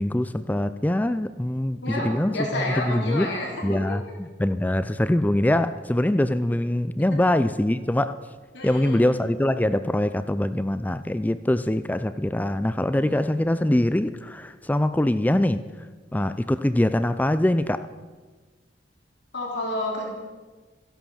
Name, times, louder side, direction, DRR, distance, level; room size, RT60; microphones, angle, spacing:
voice 1, 0.0-3.3 3.6-8.1 8.6-15.6 16.1-17.9, left 1 dB, 10° left, 0.4 m, -23 dB
voice 2, 1.8-3.8 8.5-9.1 13.0-13.3 19.3-20.1, left 1 dB, 75° left, 4.0 m, -30 dB
14.5 x 11.5 x 7.2 m
head